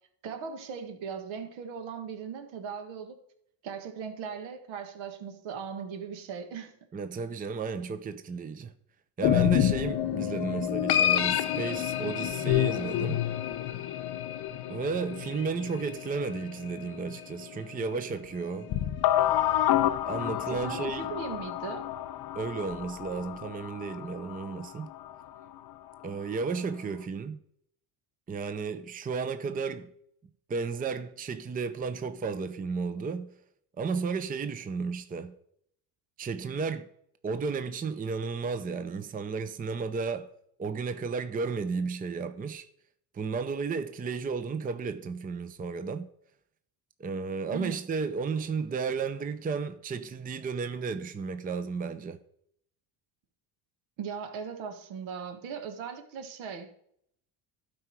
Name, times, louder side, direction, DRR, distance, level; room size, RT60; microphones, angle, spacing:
voice 1, 0.2-3.2 3.6-6.7 20.5-21.9 47.5-47.8 54.0-56.7, right 6 dB, 70° right, 1.7 m, -38 dB
voice 2, 6.9-8.7 9.2-13.2 14.7-18.7 20.0-21.1 22.3-24.9 26.0-27.4 28.3-29.9 30.5-33.3 33.8-35.3 36.2-36.9 37.2-40.3 40.6-42.7 43.1-46.1 47.0-52.2, right 5 dB, 20° right, 0.6 m, -33 dB
sound 1, 9.2-17.4 17.8-17.9 18.7-25.2, left 12 dB, 50° left, 0.8 m, -29 dB
12.0 x 4.8 x 4.6 m
supercardioid pair, 80°, 49 cm